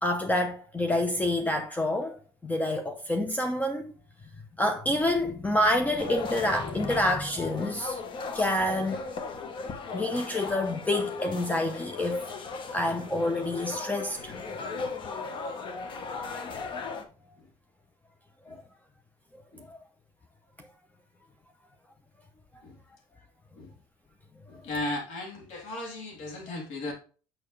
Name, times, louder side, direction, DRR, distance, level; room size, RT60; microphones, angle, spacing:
voice 1, 0.0-3.9 4.6-8.0 8.3-9.0 9.9-12.2 12.7-14.3 18.5-18.6 19.7-19.8, left 1 dB, 15° left, 0.7 m, -28 dB
sound 1, 6.0-17.0, left 4 dB, 40° left, 1.1 m, -37 dB
voice 2, 24.5-26.9, left 2 dB, 70° left, 3.4 m, -36 dB
6.7 x 6.0 x 3.2 m
supercardioid pair, 105°, 12 cm